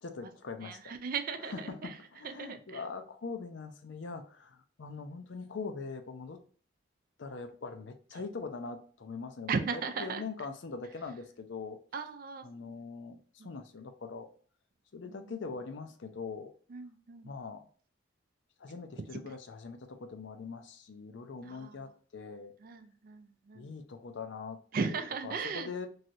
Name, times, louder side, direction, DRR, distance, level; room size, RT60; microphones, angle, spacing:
voice 1, 0.0-0.9 1.4-6.4 7.2-11.8 12.4-14.3 14.9-16.5 17.2-17.7 18.6-22.5 23.5-24.6 24.9-25.9, left 4 dB, 70° left, 8 dB, 0.5 m, -42 dB
voice 2, 0.6-1.7 2.2-2.8 9.5-10.2 11.9-12.4 16.7-17.3 21.5-21.7 22.6-23.7 24.7-25.7, right 5 dB, 50° right, 9 dB, 0.4 m, -36 dB
3.1 x 2.7 x 2.5 m, 0.43 s
head